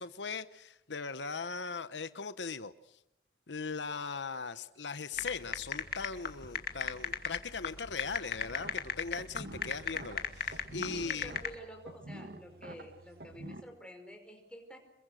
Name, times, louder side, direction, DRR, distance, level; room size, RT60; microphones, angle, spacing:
voice 1, 0.0-3.0 3.5-11.3, left 5 dB, 85° left, 13 dB, 1.0 m, -39 dB
sound 1, 5.2-11.5, left 6 dB, 55° left, 2.4 m, -35 dB
sound 2, 8.4-13.6, right 1 dB, 60° right, 2.0 m, -48 dB
voice 2, 10.9-14.8, equal, 5° left, 4 dB, 5.0 m, -49 dB
27.5 x 22.5 x 6.5 m, 0.79 s
head